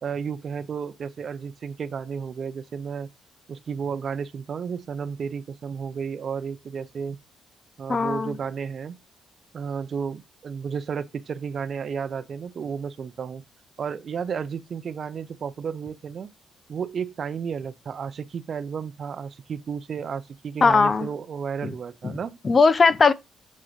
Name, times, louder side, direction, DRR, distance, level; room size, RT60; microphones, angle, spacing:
voice 1, 0.0-3.1 3.5-7.2 7.8-9.0 9.5-13.4 13.8-16.3 16.7-22.4, right 6 dB, 50° right, 0.6 m, -32 dB
voice 2, 7.9-8.4 20.6-21.1 22.0-22.1 22.4-23.1, left 4 dB, 35° left, 0.7 m, -18 dB
7.5 x 3.7 x 5.1 m
cardioid pair, 90°, 0 cm